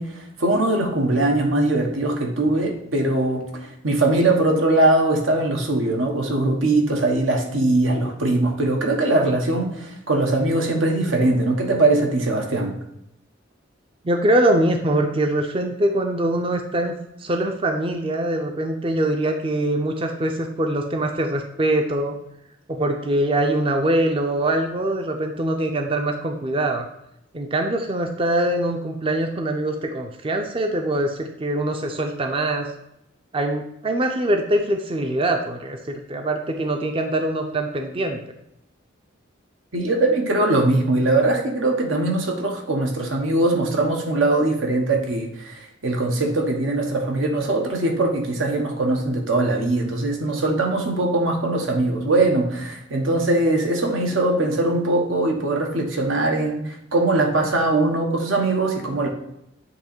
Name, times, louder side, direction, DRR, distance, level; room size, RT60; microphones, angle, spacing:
voice 1, 0.0-12.7 39.7-59.1, right 2 dB, 85° right, 1 dB, 1.2 m, -21 dB
voice 2, 14.0-16.9 17.2-22.2 22.7-26.9 27.3-32.7 33.3-38.2, right 1 dB, 25° right, 4 dB, 0.4 m, -23 dB
7.9 x 2.9 x 4.4 m, 0.81 s
head